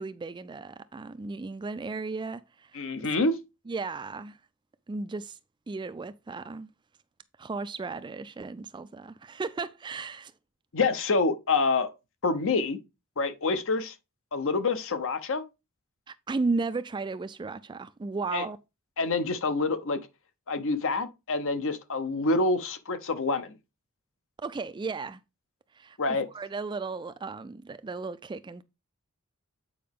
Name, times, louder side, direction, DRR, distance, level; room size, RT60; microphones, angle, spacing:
voice 1, 0.0-3.1 3.7-4.4 4.9-5.4 5.7-6.7 7.4-10.3 16.1-18.6 24.4-25.2 25.7-28.6, right 3 dB, 20° right, 0.3 m, -35 dB
voice 2, 2.7-3.3 10.7-11.9 12.2-12.8 13.2-13.9 14.3-15.4 18.3-18.4 19.0-20.0 20.5-23.5 26.0-26.3, left 3 dB, 65° left, 0.9 m, -27 dB
8.5 x 4.7 x 3.6 m
head